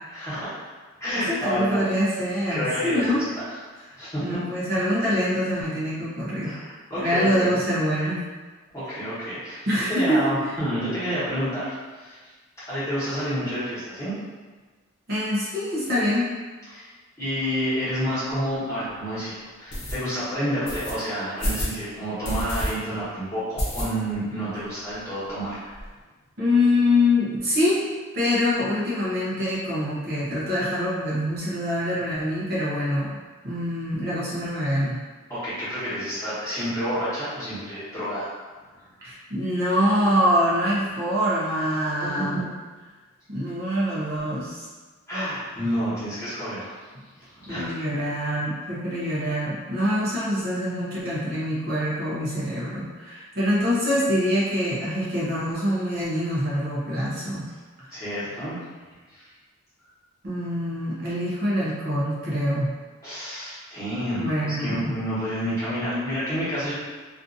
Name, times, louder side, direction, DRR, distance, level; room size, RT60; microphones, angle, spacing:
voice 1, 0.1-0.5 1.0-1.8 2.5-3.2 4.0-4.3 6.4-7.6 8.7-9.6 9.9-12.2 12.7-14.1 16.7-16.9 17.2-25.6 35.3-38.3 42.0-42.4 45.1-46.7 47.2-47.7 57.9-58.6 59.1-59.3 63.0-66.7, equal, 15° left, -13 dB, 1.1 m, -29 dB
voice 2, 1.1-3.3 4.2-6.6 7.0-8.2 9.7-10.3 15.1-16.3 26.4-27.9 28.1-33.2 33.4-35.0 39.0-42.4 43.3-44.7 46.9-47.0 47.5-57.4 60.2-62.7 64.1-64.9, left 1 dB, 45° right, -8 dB, 0.6 m, -25 dB
sound 1, 18.3-18.4 18.9-19.0 19.7-20.0 20.7-20.9 21.4-21.8 22.2-22.7 23.0-23.1 23.6-24.2 24.6-24.7 24.9-25.0 25.3-25.9, equal, 50° left, 0.8 m, -29 dB
2.6 x 2.4 x 2.5 m, 1.4 s
head